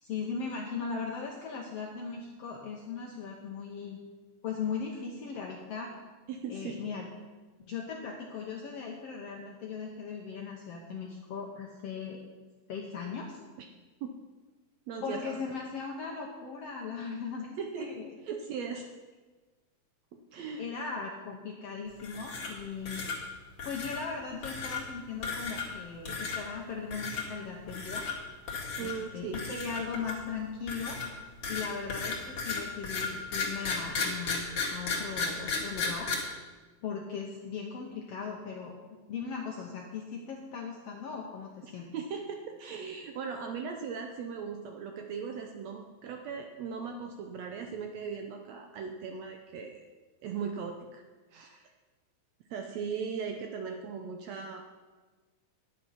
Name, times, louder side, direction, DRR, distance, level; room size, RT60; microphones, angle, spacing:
voice 1, 0.0-4.0 4.4-5.9 6.5-7.1 7.6-12.2 12.7-13.4 15.0-18.1 20.6-23.0 23.6-28.1 28.8-31.0 31.5-36.1 36.8-38.8 39.1-41.9, left 5 dB, 65° left, 0 dB, 1.6 m, -38 dB
voice 2, 6.3-6.8 13.6-13.7 14.0-14.2 14.9-15.4 17.6-17.9 18.2-18.9 20.1-20.7 28.8-29.4 41.6-49.8 50.2-51.0 51.3-51.7 52.5-54.7, right 6 dB, 75° right, 4 dB, 1.6 m, -38 dB
sound 1, 22.0-22.6 22.9-23.2 23.6-24.0 24.4-24.8 25.2-25.8 26.1-26.4 26.9-27.2 27.7-28.1 28.5-28.9 29.3-30.3 30.7-36.1, left 4 dB, 50° left, 2.7 m, -34 dB
10.5 x 9.0 x 5.7 m, 1.3 s
omnidirectional pair, 3.8 m